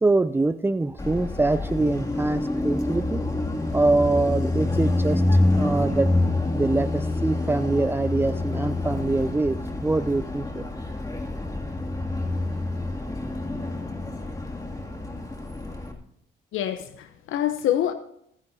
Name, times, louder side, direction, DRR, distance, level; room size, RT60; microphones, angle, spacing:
voice 1, 0.0-3.2 3.7-6.1 6.5-10.7, right 2 dB, 10° right, 12 dB, 0.5 m, -24 dB
Car passing by, 1.0-15.9, left 2 dB, 15° left, 2.5 m, -27 dB
voice 2, 16.5-17.9, left 11 dB, 85° left, 9 dB, 0.9 m, -26 dB
25.5 x 10.0 x 2.8 m, 0.72 s
cardioid pair, 90°, 20 cm